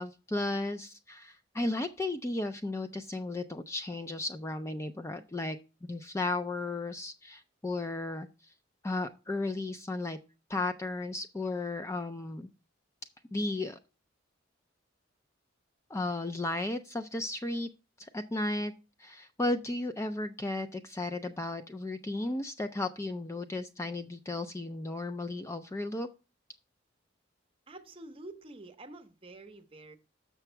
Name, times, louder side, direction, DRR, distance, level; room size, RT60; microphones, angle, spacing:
voice 1, 0.0-5.6 5.8-8.3 8.8-10.2 10.5-12.5 13.3-13.8 15.9-17.7 18.0-18.7 19.0-26.1, left 2 dB, 15° left, 0.4 m, -34 dB
voice 2, 27.7-30.0, right 2 dB, 30° right, 0.8 m, -48 dB
7.0 x 5.8 x 4.4 m
head